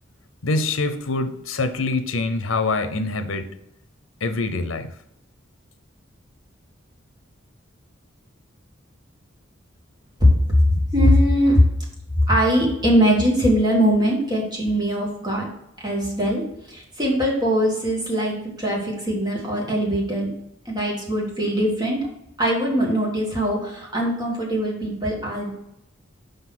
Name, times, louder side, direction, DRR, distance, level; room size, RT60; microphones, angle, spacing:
voice 1, 0.4-3.5 4.2-4.9, left 3 dB, 75° left, 10 dB, 0.7 m, -25 dB
voice 2, 10.2-11.7 12.3-15.5 15.8-16.4 16.7-20.3 20.7-22.1 22.4-25.5, equal, 20° right, -2 dB, 1.9 m, -21 dB
5.2 x 4.0 x 6.0 m, 0.81 s
head